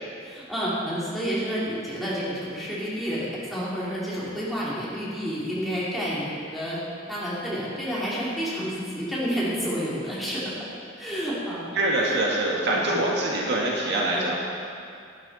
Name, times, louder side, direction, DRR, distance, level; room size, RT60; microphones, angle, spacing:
voice 1, 0.2-6.8 7.1-10.5 11.0-11.7 12.1-12.2 12.6-13.0 14.1-14.3, equal, ahead, -9 dB, 2.8 m, -30 dB
voice 2, 11.7-14.3, right 1 dB, 60° right, -4 dB, 1.8 m, -24 dB
12.0 x 12.0 x 4.2 m, 2.4 s
head